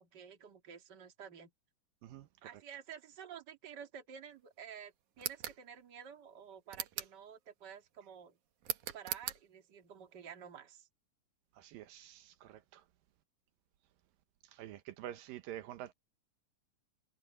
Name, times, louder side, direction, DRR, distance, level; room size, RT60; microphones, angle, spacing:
voice 1, 0.0-1.5 2.4-8.4 8.9-10.9, right 8 dB, 35° right, 2.3 m, -51 dB
sound 1, 5.2-5.6 6.7-7.2 8.6-9.4, right 11 dB, 65° right, 2.5 m, -40 dB
voice 2, 11.6-12.8 14.5-15.9, right 12 dB, 80° right, 2.6 m, -47 dB
omnidirectional pair, 4.0 m